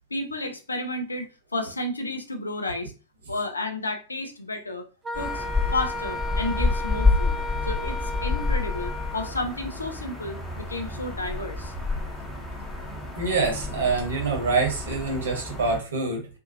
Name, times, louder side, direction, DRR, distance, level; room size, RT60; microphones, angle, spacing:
voice 1, 0.1-2.9 3.3-4.9 5.1-5.4 5.7-11.7, left 2 dB, 80° left, 0.5 m, -32 dB
Wind instrument woodwind instrument, 5.0-9.4, left 1 dB, 20° right, 0.5 m, -34 dB
sound 1, 5.1-15.8, left 3 dB, 10° left, 1.0 m, -29 dB
voice 2, 13.2-16.3, right 4 dB, 70° right, 1.1 m, -25 dB
2.7 x 2.5 x 2.6 m
figure-of-eight pair, 90°, 0 cm